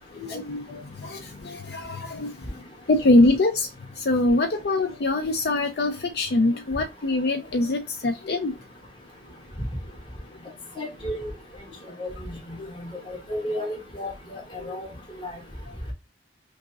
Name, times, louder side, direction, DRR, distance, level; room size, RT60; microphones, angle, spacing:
voice 1, 0.1-2.3 2.9-3.7 4.0-8.5 12.6-12.7 14.6-14.9, left 2 dB, 65° left, 0.4 m, -23 dB
voice 2, 10.8-11.3 12.0-14.4 14.7-14.9 15.2-15.4, left 1 dB, 30° left, 1.2 m, -33 dB
5.9 x 2.0 x 2.5 m
head